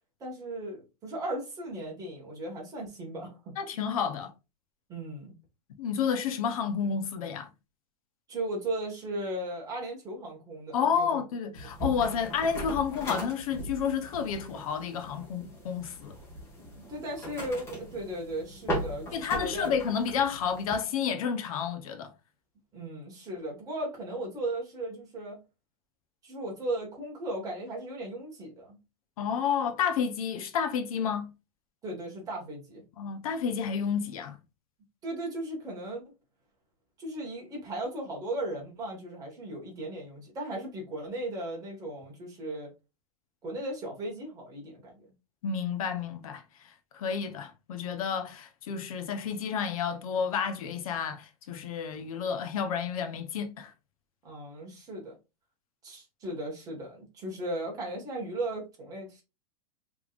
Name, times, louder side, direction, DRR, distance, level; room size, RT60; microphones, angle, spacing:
voice 1, 0.2-3.5 4.9-5.3 8.3-11.2 11.6-12.1 16.7-19.7 22.7-25.4 26.2-28.8 31.8-32.8 35.0-36.0 37.0-42.7 43.4-45.0 54.2-55.2 55.8-59.2, right 1 dB, 15° right, 1.6 m, -36 dB
voice 2, 3.6-4.3 5.8-7.5 10.7-16.2 19.1-22.1 29.2-31.3 33.0-34.4 45.4-53.7, left 7 dB, 65° left, 0.9 m, -30 dB
sound 1, 11.6-20.8, equal, 15° left, 1.6 m, -39 dB
5.2 x 3.3 x 2.5 m
supercardioid pair, 165°, 20 cm